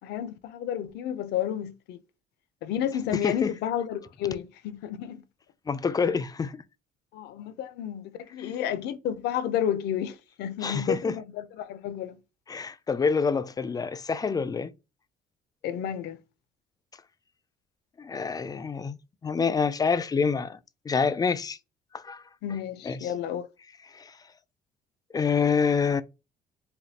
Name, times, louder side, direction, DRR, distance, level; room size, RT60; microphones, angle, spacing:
voice 1, 0.0-2.0 2.6-5.2 7.1-12.2 15.6-16.2 22.4-23.5, left 10 dB, 80° left, 0.6 m, -31 dB
voice 2, 3.1-3.5 5.7-6.6 10.6-11.1 12.5-14.7 18.0-19.0 19.2-20.6 20.9-21.6 21.9-22.2 22.8-23.1 23.9-24.2 25.1-26.0, left 5 dB, 20° left, 0.4 m, -27 dB
5.1 x 2.3 x 2.8 m
cardioid pair, 110°, 17 cm